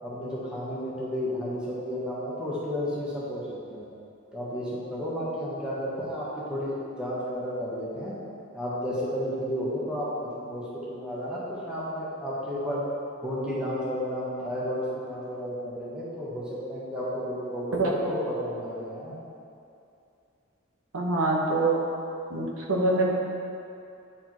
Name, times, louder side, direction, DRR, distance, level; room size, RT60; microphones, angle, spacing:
voice 1, 0.0-3.9 4.3-8.1 8.5-12.8 13.2-19.2, equal, 5° right, -8 dB, 1.2 m, -32 dB
voice 2, 20.9-21.8 22.3-23.1, right 2 dB, 85° right, -2 dB, 1.0 m, -24 dB
9.8 x 4.4 x 3.0 m, 2.6 s
head